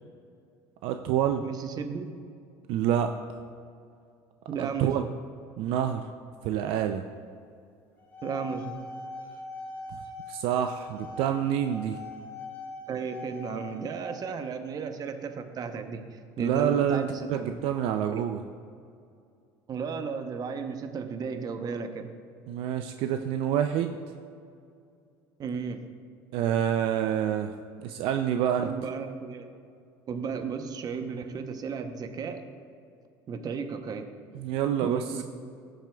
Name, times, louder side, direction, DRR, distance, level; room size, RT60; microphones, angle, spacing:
voice 1, 0.8-1.4 2.7-3.1 4.6-5.0 5.6-6.0 6.4-7.0 10.3-12.0 16.4-18.4 22.5-24.0 26.3-27.5 27.8-28.7 34.3-35.0, right 10 dB, 70° right, 7 dB, 0.4 m, -27 dB
voice 2, 1.4-2.1 4.5-5.1 8.2-8.8 12.9-17.6 18.1-18.2 19.7-22.1 25.4-25.8 28.6-29.5 30.1-32.4 33.3-34.1 34.8-35.2, right 5 dB, 40° right, 7 dB, 0.8 m, -34 dB
sound 1, 8.0-14.2, left 2 dB, 20° left, 1.7 m, -42 dB
14.0 x 7.6 x 2.3 m, 2.4 s
supercardioid pair, 105°, 10 cm